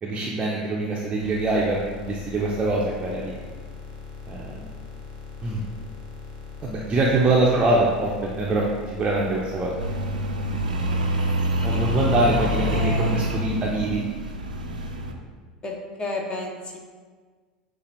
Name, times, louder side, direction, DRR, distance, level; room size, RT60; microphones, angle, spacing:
voice 1, 0.0-3.4 4.3-4.6 5.4-5.6 6.6-9.7 11.6-14.0, right 2 dB, 25° right, -4 dB, 0.5 m, -24 dB
sound 1, 1.2-12.6, left 5 dB, 55° left, 1.0 m, -40 dB
sound 2, 9.8-15.1, right 1 dB, 80° right, 0.4 m, -26 dB
voice 2, 11.7-12.1 12.7-13.2 15.6-16.8, left 2 dB, 20° left, 0 dB, 0.7 m, -33 dB
6.5 x 2.4 x 2.9 m, 1.5 s
figure-of-eight pair, 80°, 4 cm